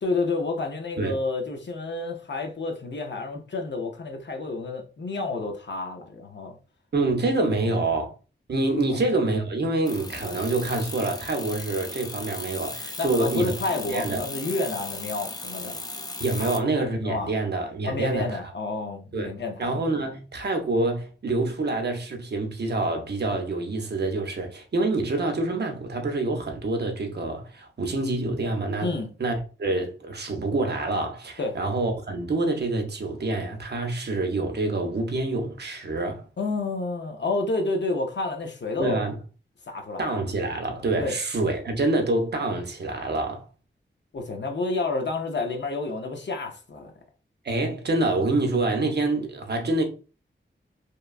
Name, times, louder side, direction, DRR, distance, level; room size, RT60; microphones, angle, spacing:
voice 1, 0.0-6.6 8.8-9.0 13.0-15.8 16.4-16.7 17.0-17.3 17.8-19.8 28.8-29.1 31.4-31.6 36.4-39.0 39.7-40.2 41.0-41.1 44.1-46.9, left 3 dB, 60° left, 0.6 m, -30 dB
voice 2, 6.9-8.1 8.5-13.6 13.9-14.2 16.2-18.4 19.1-19.3 19.6-28.9 29.2-36.2 38.8-39.2 40.0-43.4 47.4-49.8, right 2 dB, 55° right, 0.6 m, -26 dB
sound 1, 9.9-16.6, left 2 dB, 20° left, 0.3 m, -37 dB
2.9 x 2.2 x 2.3 m
wide cardioid pair, 100°, 20 cm